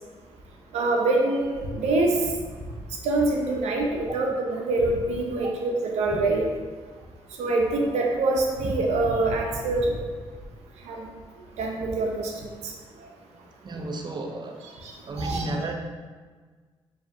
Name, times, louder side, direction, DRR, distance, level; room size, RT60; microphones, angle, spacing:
voice 1, 0.7-2.2 3.0-6.5 7.4-9.9 10.9-11.0 11.6-12.3 15.2-15.4, right 2 dB, 85° right, 0 dB, 0.6 m, -24 dB
voice 2, 13.6-14.6 15.1-15.7, right 2 dB, 40° right, 3 dB, 0.6 m, -33 dB
4.7 x 2.8 x 2.7 m, 1.5 s
supercardioid pair, 60°, 11 cm